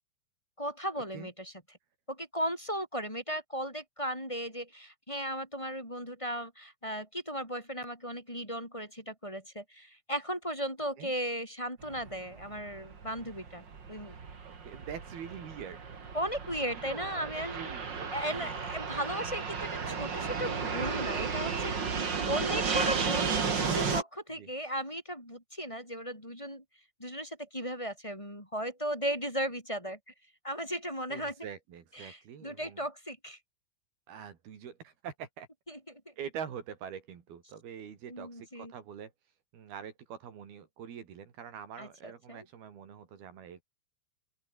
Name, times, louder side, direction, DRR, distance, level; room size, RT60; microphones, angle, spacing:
voice 1, 0.6-1.5 2.1-14.1 16.1-17.7 18.1-26.6 27.0-30.0 30.4-31.3 32.0-33.4 38.1-38.7 41.8-42.4, equal, 5° left, 6.4 m, -36 dB
Fixed-wing aircraft airplane, 11.8-24.0, right 5 dB, 35° right, 2.6 m, -34 dB
voice 2, 14.1-15.8 16.8-18.6 22.7-22.9 24.3-24.5 31.1-32.9 34.1-35.5 36.2-39.1 39.5-43.6, right 8 dB, 75° right, 4.7 m, -44 dB
open air
omnidirectional pair, 4.5 m